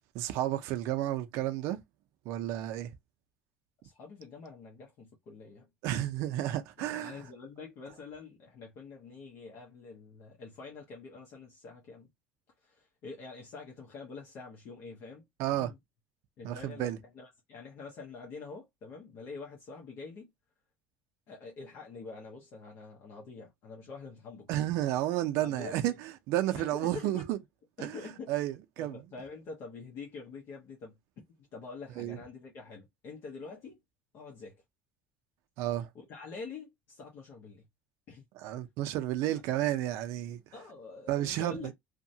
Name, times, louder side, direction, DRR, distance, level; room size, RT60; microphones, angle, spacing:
voice 1, 0.1-1.8 2.3-2.9 5.8-7.2 15.4-15.7 16.4-17.0 24.5-25.9 26.3-27.4 27.8-28.0 28.3-29.0 32.0-32.2 35.6-35.9 38.4-40.4 41.1-41.7, right 14 dB, 65° right, 0.4 m, -31 dB
voice 2, 3.8-5.7 6.8-12.1 12.6-15.2 15.5-15.8 16.4-20.3 21.3-24.5 25.4-26.0 26.5-27.4 27.8-28.3 28.8-33.8 34.1-34.6 35.9-37.7 38.1-38.2 39.2-39.4 40.5-41.7, left 4 dB, 50° left, 0.8 m, -46 dB
2.7 x 2.2 x 2.7 m
cardioid pair, 145°, 5 cm